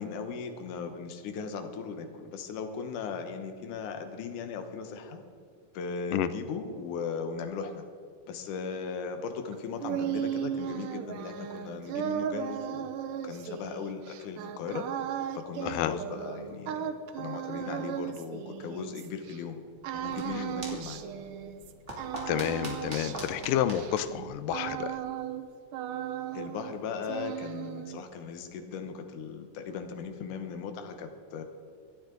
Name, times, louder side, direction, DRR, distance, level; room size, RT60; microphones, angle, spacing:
voice 1, 0.0-5.2 5.7-7.8 8.2-14.8 15.3-19.6 19.9-21.0 26.3-31.4, left 5 dB, 70° left, 6 dB, 2.5 m, -38 dB
sound 1, 9.5-19.4 19.8-21.7 22.0-25.5 25.7-26.7 27.0-28.0, right 9 dB, 90° right, 2.4 m, -36 dB
sound 2, 19.8-25.1, right 1 dB, 25° right, 2.5 m, -44 dB
voice 2, 22.3-25.0, left 11 dB, 90° left, 13 dB, 2.3 m, -29 dB
25.5 x 9.5 x 3.9 m, 2.4 s
omnidirectional pair, 3.8 m